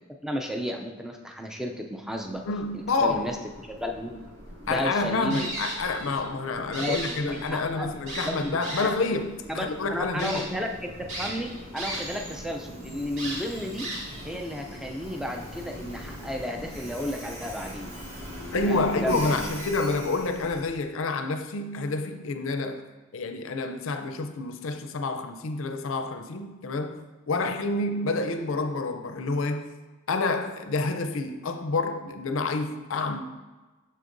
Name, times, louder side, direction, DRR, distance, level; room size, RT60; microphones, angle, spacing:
voice 1, 0.2-2.4 3.0-3.4 3.6-4.3 4.6-5.5 6.8-7.9 8.2-8.9 9.5-10.9 11.2-13.9 14.2-17.9 18.6-19.4, equal, ahead, 0.4 m, -33 dB
Train, 2.0-20.8, equal, 50° right, 1.6 m, -43 dB
voice 2, 2.4-3.2 4.7-10.4 18.5-22.8 23.1-29.7 30.1-33.2, left 3 dB, 65° left, 0.5 m, -28 dB
sound 1, 5.3-6.2 6.6-7.6 8.1-9.1 9.6-9.7 10.2-10.4 11.1-12.3 12.6-12.7 13.2-14.3, right 1 dB, 65° right, 2.0 m, -35 dB
6.7 x 6.3 x 2.6 m
head